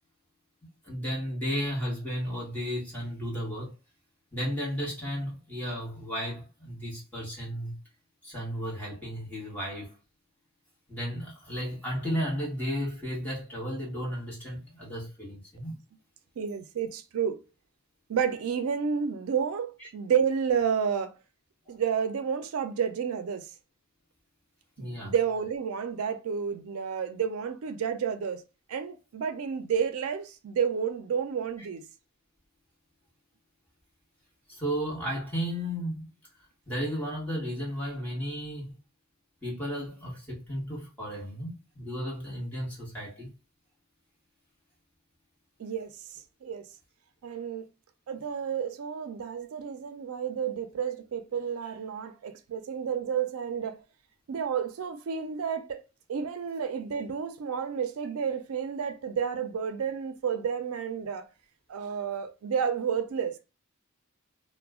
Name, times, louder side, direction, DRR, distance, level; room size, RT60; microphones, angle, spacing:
voice 1, 0.8-3.7 4.3-7.8 8.2-10.0 10.9-15.8 19.8-19.9 21.7-21.8 24.8-25.1 34.5-36.1 36.7-38.7 39.4-43.3, equal, 10° left, 1.2 m, -34 dB
voice 2, 16.4-17.4 18.1-21.1 21.7-23.5 24.8-28.4 28.7-31.8 45.6-46.7 47.2-47.7 48.1-53.8 54.3-55.8 56.1-61.2 61.7-63.4, right 7 dB, 85° right, 0.4 m, -30 dB
2.3 x 2.1 x 3.4 m
head